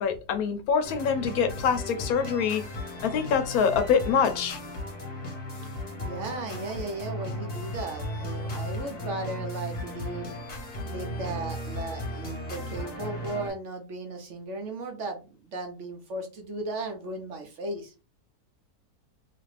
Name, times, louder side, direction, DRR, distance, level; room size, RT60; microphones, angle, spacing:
voice 1, 0.0-2.6 3.0-4.6, left 6 dB, 75° left, 1.0 m, -25 dB
sound 1, 0.8-13.5, left 1 dB, 30° left, 0.9 m, -36 dB
voice 2, 6.0-10.3 10.9-17.9, right 2 dB, 60° right, 0.9 m, -36 dB
2.8 x 2.5 x 3.2 m
omnidirectional pair, 1.7 m